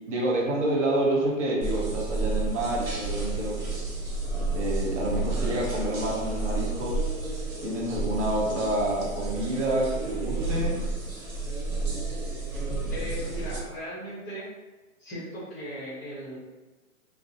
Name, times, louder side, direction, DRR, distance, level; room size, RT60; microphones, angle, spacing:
voice 1, 0.1-3.8 4.5-7.0 7.6-10.8, right 1 dB, 60° right, -3 dB, 0.8 m, -28 dB
sound 1, 1.6-13.6, right 3 dB, 85° right, 1.0 m, -31 dB
voice 2, 12.9-14.5 15.0-16.4, equal, 15° left, -10 dB, 0.5 m, -37 dB
2.4 x 2.1 x 2.7 m, 1.2 s
hypercardioid pair, 150°, 41 cm